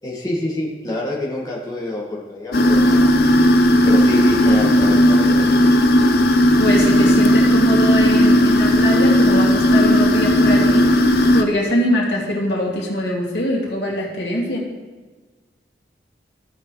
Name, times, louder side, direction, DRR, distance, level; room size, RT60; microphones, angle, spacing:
voice 1, 0.0-3.1 3.8-5.7, left 1 dB, 20° left, -5 dB, 1.7 m, -27 dB
sound 1, 2.5-11.4, equal, 60° left, 0.6 m, -14 dB
voice 2, 6.6-14.6, left 1 dB, 90° left, -4 dB, 2.4 m, -22 dB
15.5 x 6.4 x 3.2 m, 1.3 s
head